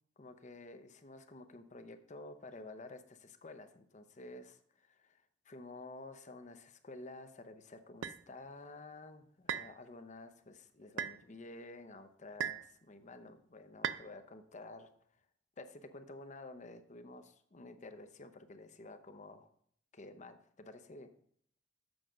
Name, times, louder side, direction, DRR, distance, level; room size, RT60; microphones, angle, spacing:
voice 1, 0.2-14.9 15.6-19.5 19.9-21.1, left 2 dB, 40° left, 8 dB, 0.7 m, -51 dB
sound 1, 8.0-8.2 9.5-9.7 11.0-11.2 12.4-12.7 13.8-14.1, right 8 dB, 90° right, 0.5 m, -37 dB
7.9 x 5.1 x 6.2 m, 0.63 s
head